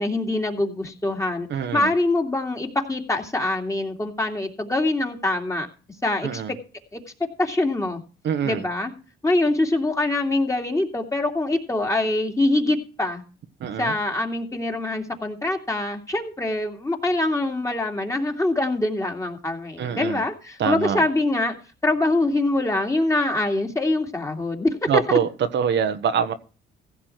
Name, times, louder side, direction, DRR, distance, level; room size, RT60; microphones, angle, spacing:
voice 1, 0.0-1.5 1.7-5.7 6.0-6.6 6.9-7.0 7.4-8.0 8.4-8.9 9.2-13.2 13.8-21.5 21.8-25.2, left 2 dB, 15° left, 2.6 m, -24 dB
voice 2, 1.5-1.9 6.2-6.5 8.2-8.6 13.6-13.9 19.8-20.2 20.6-21.0 24.9-26.3, right 7 dB, 65° right, 1.3 m, -24 dB
16.0 x 7.2 x 4.5 m
cardioid pair, 90°, 20 cm